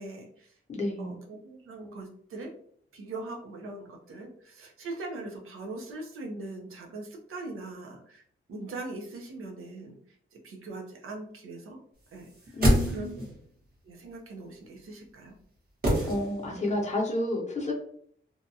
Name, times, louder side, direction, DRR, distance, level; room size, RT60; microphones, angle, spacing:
voice 1, 0.0-0.6 1.0-2.5 2.9-8.2 8.5-10.0 10.3-11.8 12.1-12.6 12.9-13.4 13.8-15.3, right 2 dB, 85° right, 1 dB, 0.7 m, -41 dB
voice 2, 0.7-1.2 12.5-13.2 16.0-17.7, left 1 dB, 35° left, -1 dB, 0.7 m, -30 dB
sound 1, 12.2-13.4 15.8-16.7 17.0-17.1, equal, 45° right, 1.0 m, -26 dB
2.7 x 2.3 x 2.7 m, 0.63 s
wide cardioid pair, 160°, 21 cm